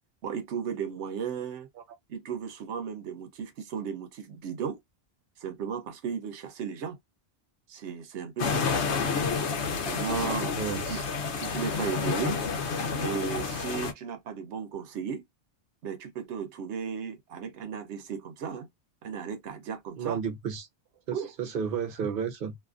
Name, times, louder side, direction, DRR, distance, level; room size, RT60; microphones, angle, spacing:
voice 1, 0.2-1.7 2.1-4.8 5.4-7.0 7.7-8.7 9.8-10.6 10.9-11.0 11.3-12.4 13.0-15.2 15.8-18.7 19.0-20.2 21.1-21.3, right 7 dB, 90° right, 1.0 m, -35 dB
sound 1, 8.4-13.9, left 5 dB, 90° left, 1.0 m, -29 dB
voice 2, 10.5-11.1 20.0-20.7 21.1-22.6, right 7 dB, 55° right, 0.9 m, -32 dB
2.6 x 2.4 x 2.4 m
omnidirectional pair, 1.1 m